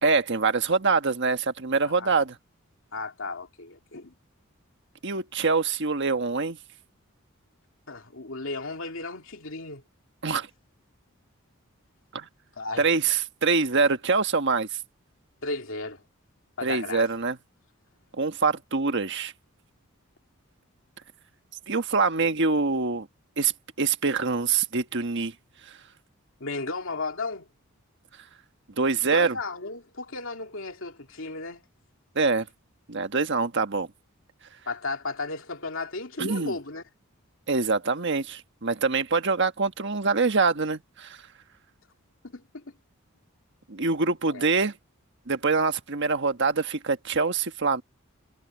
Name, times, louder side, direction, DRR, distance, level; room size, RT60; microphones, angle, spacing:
voice 1, 0.0-2.4 5.0-6.6 10.2-10.5 12.1-12.3 12.8-14.7 16.6-17.4 18.2-19.3 21.7-23.1 23.4-23.5 23.8-25.3 28.8-29.3 32.1-32.5 32.9-33.9 36.2-36.5 37.5-41.2 43.7-44.7 45.3-47.8, right 4 dB, 60° right, 1.4 m, -24 dB
voice 2, 2.9-4.1 7.9-9.8 12.6-12.9 15.4-16.0 16.6-17.1 26.4-27.5 29.0-31.6 34.7-36.8 42.2-42.6 44.3-44.5, left 3 dB, 65° left, 2.9 m, -34 dB
head